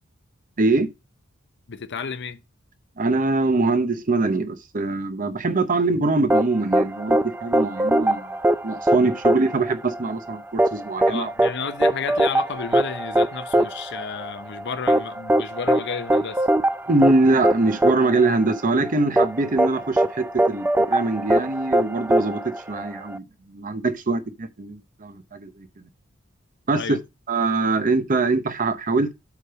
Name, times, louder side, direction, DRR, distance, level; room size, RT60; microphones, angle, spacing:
voice 1, 0.6-0.9 3.0-8.4 8.6-11.3 16.9-25.7 26.7-27.0 27.3-29.1, right 3 dB, 40° right, 0.8 m, -23 dB
voice 2, 1.7-2.4 11.1-16.5 26.7-27.0, left 6 dB, 55° left, 0.7 m, -32 dB
sound 1, 6.3-23.2, right 1 dB, 10° right, 0.4 m, -22 dB
8.3 x 3.4 x 6.6 m
head